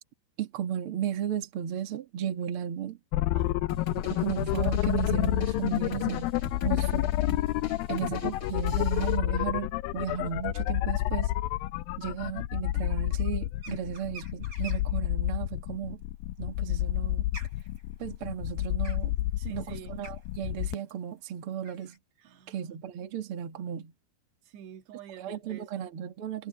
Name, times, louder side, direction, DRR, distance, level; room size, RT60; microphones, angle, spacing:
voice 1, 0.4-3.0 4.0-6.3 6.6-7.1 7.9-11.3 12.0-16.0 16.4-17.3 18.0-19.1 19.5-22.0 22.5-23.9 25.2-26.5, right 9 dB, 45° right, 2.2 m, -34 dB
sound 1, 3.1-20.7, left 16 dB, 80° left, 2.1 m, -29 dB
sound 2, 3.7-9.2, left 3 dB, 30° left, 5.2 m, -43 dB
sound 3, 13.6-15.0 16.4-22.0, right 3 dB, 25° right, 6.2 m, -48 dB
voice 2, 18.9-20.0 22.2-22.8 24.5-25.9, right 10 dB, 85° right, 3.9 m, -48 dB
omnidirectional pair, 4.8 m